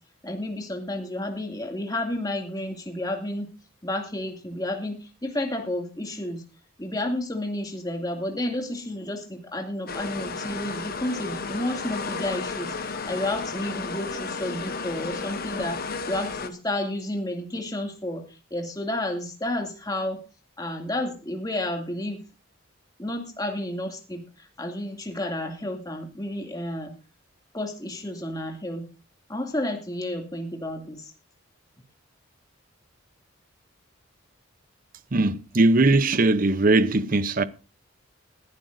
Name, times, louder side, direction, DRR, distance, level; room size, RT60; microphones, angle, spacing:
voice 1, 0.2-3.5 3.8-6.4 6.8-20.2 20.6-22.2 23.0-26.9 27.5-28.9 29.3-31.1, left 1 dB, 20° left, 2.4 m, -31 dB
sound 1, 9.9-16.5, left 4 dB, 45° left, 1.2 m, -33 dB
voice 2, 35.1-37.4, right 2 dB, 40° right, 0.7 m, -20 dB
21.0 x 11.5 x 2.6 m
head